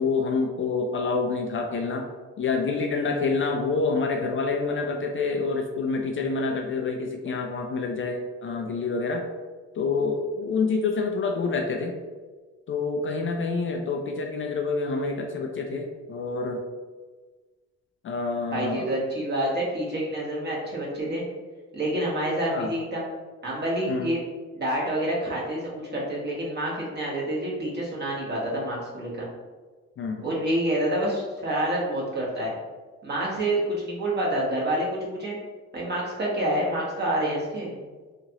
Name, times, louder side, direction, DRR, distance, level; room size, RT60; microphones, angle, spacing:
voice 1, 0.0-2.1 2.4-9.2 9.7-11.9 12.7-16.6 18.0-18.9 22.5-22.7 23.9-24.1 30.0-30.3, left 4 dB, 45° left, 3 dB, 0.4 m, -27 dB
voice 2, 18.5-21.2 21.7-23.0 23.4-24.2 24.5-29.2 30.2-32.5 33.0-35.4 35.7-37.7, right 1 dB, 35° right, -5 dB, 1.2 m, -28 dB
3.0 x 2.4 x 2.8 m, 1.4 s
cardioid pair, 90°, 30 cm